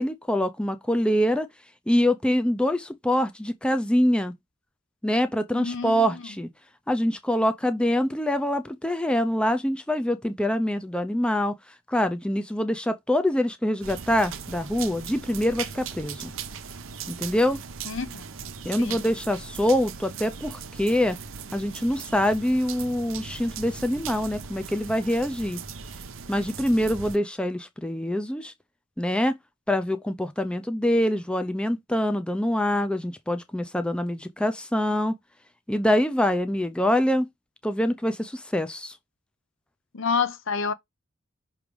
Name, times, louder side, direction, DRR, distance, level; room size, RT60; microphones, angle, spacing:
voice 1, 0.0-1.5 1.9-4.3 5.0-6.5 6.9-11.5 11.9-16.3 17.1-17.6 18.6-21.2 21.5-25.6 26.3-28.5 29.0-29.4 29.7-35.2 35.7-37.3 37.6-39.0, left 1 dB, 5° left, 0.5 m, -25 dB
voice 2, 5.5-6.2 17.9-18.3 18.8-19.0 39.9-40.7, left 5 dB, 65° left, 0.7 m, -28 dB
sound 1, 13.8-27.2, right 6 dB, 65° right, 0.8 m, -39 dB
5.9 x 3.3 x 5.2 m
head